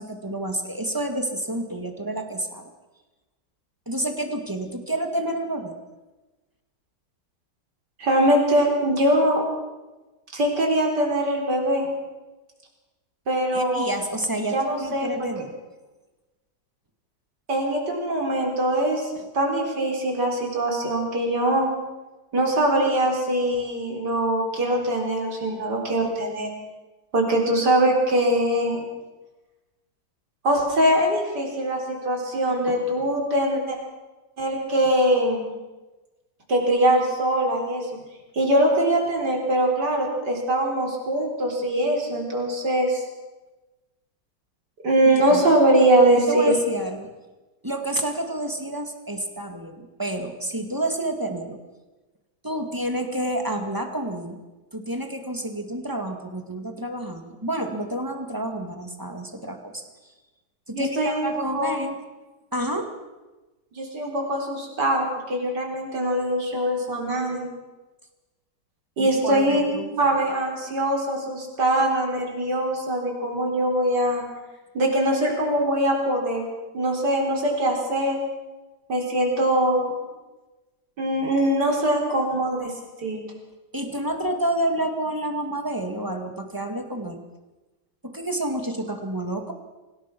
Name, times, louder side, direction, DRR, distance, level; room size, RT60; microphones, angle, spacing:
voice 1, 0.0-2.7 3.9-5.8 13.5-15.5 45.0-45.4 46.2-47.1 47.6-51.6 52.4-54.4 54.7-59.8 60.7-62.0 62.5-62.9 69.0-70.0 83.7-87.2 88.0-89.5, right 1 dB, 10° right, 5 dB, 2.1 m, -29 dB
voice 2, 8.0-9.4 10.3-11.9 13.3-13.9 14.5-15.3 17.5-21.7 22.3-26.5 27.1-28.8 30.4-33.8 34.4-35.5 36.5-37.8 38.3-43.0 44.8-46.5 60.7-61.7 63.7-67.5 69.0-69.6 70.0-74.2 74.7-76.5 76.7-78.2 78.9-79.9 81.0-82.7 83.0-83.2, right 1 dB, 70° right, 1 dB, 4.9 m, -22 dB
25.5 x 18.0 x 6.2 m, 1.1 s
omnidirectional pair, 1.9 m